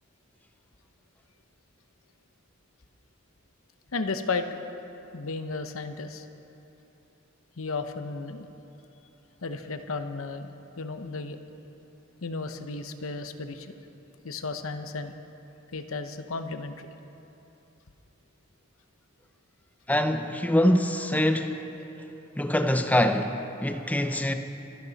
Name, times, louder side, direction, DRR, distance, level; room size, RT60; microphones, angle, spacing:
voice 1, 3.9-4.6 5.1-6.3 7.6-8.5 9.4-10.5 10.8-11.4 12.2-13.7 14.2-15.1 15.7-16.9, left 3 dB, 85° left, 0.9 m, -33 dB
voice 2, 19.9-21.6 22.4-23.3 23.6-24.3, left 1 dB, 10° left, 0.7 m, -24 dB
25.5 x 11.0 x 4.1 m
head